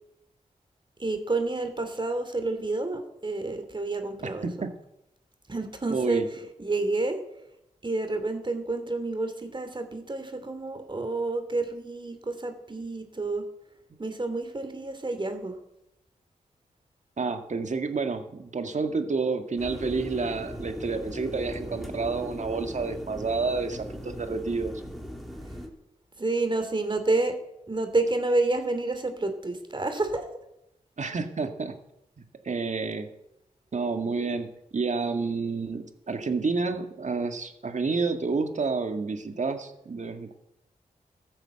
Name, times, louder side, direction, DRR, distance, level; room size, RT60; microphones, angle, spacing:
voice 1, 1.0-4.5 5.5-6.2 6.6-7.2 7.8-13.4 14.0-15.6 26.2-27.4 27.7-30.3, right 2 dB, 35° right, 7 dB, 2.8 m, -29 dB
voice 2, 5.9-6.3 17.2-24.7 31.0-31.7 32.5-33.1 33.7-40.3, right 4 dB, 55° right, 6 dB, 1.9 m, -29 dB
sound 1, 19.6-25.7, equal, ahead, 3.6 m, -38 dB
14.0 x 8.9 x 7.8 m, 0.83 s
cardioid pair, 50°, 14 cm